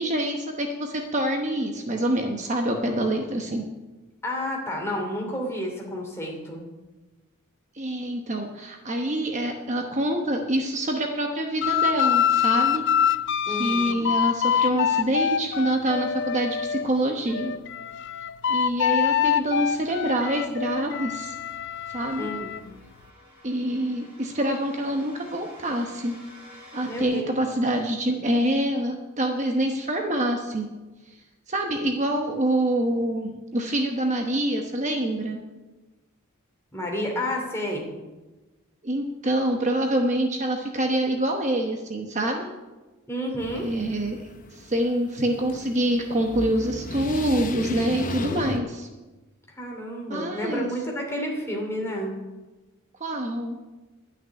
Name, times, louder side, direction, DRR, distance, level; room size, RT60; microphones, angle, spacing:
voice 1, 0.0-3.6 7.7-12.8 13.5-17.5 18.5-21.3 21.9-22.3 23.4-26.1 26.7-30.7 31.5-35.4 38.8-42.5 43.5-44.2 44.5-48.9 50.1-50.7 53.0-53.6, right 1 dB, 30° right, 2 dB, 1.0 m, -26 dB
voice 2, 4.2-6.6 13.5-14.0 22.2-22.6 26.9-27.4 36.7-37.9 43.1-43.7 49.5-52.2, equal, 10° left, -1 dB, 2.7 m, -30 dB
sound 1, 11.6-16.9 17.3-22.6, left 8 dB, 55° left, 0.4 m, -25 dB
Devil's Foot Pop and Pour Morphagene Reel, 21.1-27.0, left 1 dB, 5° right, 4.7 m, -50 dB
sound 2, 43.4-48.6, left 2 dB, 35° left, 0.9 m, -35 dB
11.5 x 6.4 x 9.4 m, 1.2 s
head